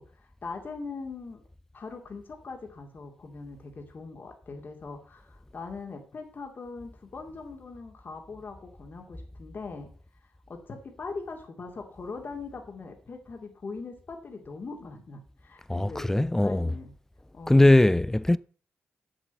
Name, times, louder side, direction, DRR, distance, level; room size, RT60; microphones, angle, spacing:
voice 1, 0.0-1.4 1.7-9.9 10.5-16.9 17.3-17.9, left 4 dB, 50° left, 2.4 m, -41 dB
voice 2, 15.7-16.7 17.5-18.4, left 1 dB, 10° left, 0.4 m, -20 dB
7.7 x 7.5 x 8.1 m
cardioid pair, 90°, 4 cm